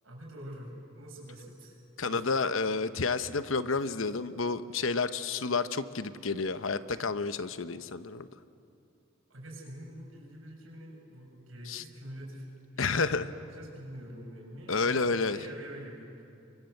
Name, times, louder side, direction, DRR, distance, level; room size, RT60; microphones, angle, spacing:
voice 1, 0.0-2.6 9.3-12.5 12.7-16.2, equal, 80° right, 0 dB, 7.0 m, -45 dB
voice 2, 2.0-8.3 11.7-11.8 12.8-13.3 14.7-15.4, left 4 dB, 70° left, 12 dB, 1.0 m, -30 dB
29.5 x 24.0 x 7.9 m, 2.6 s
head